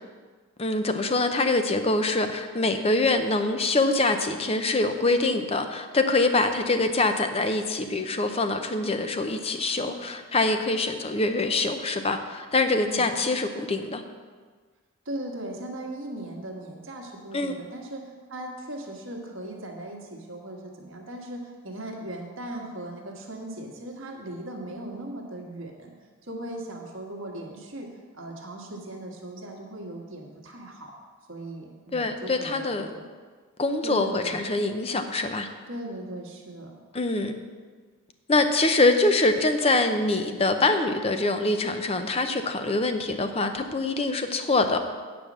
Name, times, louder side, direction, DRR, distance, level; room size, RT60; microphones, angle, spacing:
voice 1, 0.6-14.0 17.3-17.5 31.9-32.9 33.6-35.5 36.9-37.3 38.3-44.8, left 2 dB, 25° left, 7 dB, 0.6 m, -24 dB
voice 2, 15.0-25.9 26.2-27.9 28.1-30.9 31.3-33.1 33.8-34.4 35.7-36.7, right 1 dB, 60° right, 0 dB, 1.6 m, -38 dB
9.2 x 5.2 x 7.4 m, 1.5 s
head